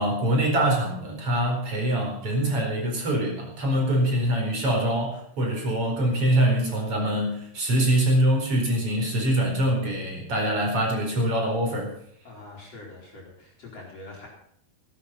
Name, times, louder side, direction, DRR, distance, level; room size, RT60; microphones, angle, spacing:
voice 1, 0.0-11.9, right 1 dB, 35° right, 1 dB, 5.2 m, -24 dB
voice 2, 12.2-14.3, left 2 dB, 40° left, -2 dB, 4.2 m, -44 dB
16.5 x 11.5 x 5.7 m, 0.68 s
omnidirectional pair, 4.4 m